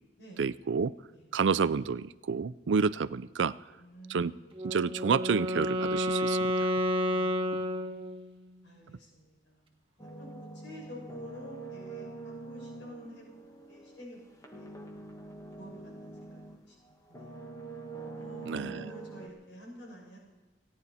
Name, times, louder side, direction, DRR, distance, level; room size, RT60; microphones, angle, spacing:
voice 1, 0.4-0.9 1.3-3.5 4.1-4.3 4.6-6.7 7.5-7.6 18.5-18.8, right 5 dB, 90° right, 17 dB, 0.5 m, -29 dB
voice 2, 3.8-4.6 8.6-9.7 10.0-14.7 15.6-16.8 17.1-17.4 18.2-20.2, equal, 80° left, -2 dB, 6.3 m, -49 dB
Wind instrument woodwind instrument, 4.6-8.5, equal, 30° right, 1.4 m, -30 dB
sound 1, 10.0-16.7 17.1-19.3, right 3 dB, 20° left, 1.6 m, -45 dB
29.5 x 9.9 x 4.2 m, 1.2 s
head